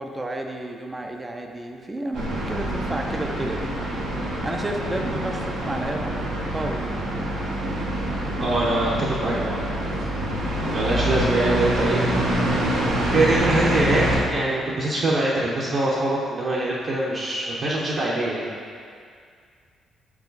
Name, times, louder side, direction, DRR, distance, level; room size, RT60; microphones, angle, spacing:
voice 1, 0.0-3.7 4.4-6.2 6.5-6.8 10.5-11.3, right 1 dB, 20° right, 3 dB, 0.6 m, -32 dB
sound 1, 2.1-14.2, right 1 dB, 90° right, 1.3 m, -26 dB
voice 2, 8.4-9.6 10.7-12.0 13.1-18.5, right 2 dB, 50° right, -6 dB, 0.9 m, -23 dB
6.0 x 4.9 x 4.0 m, 2.2 s
cardioid pair, 90°, 0 cm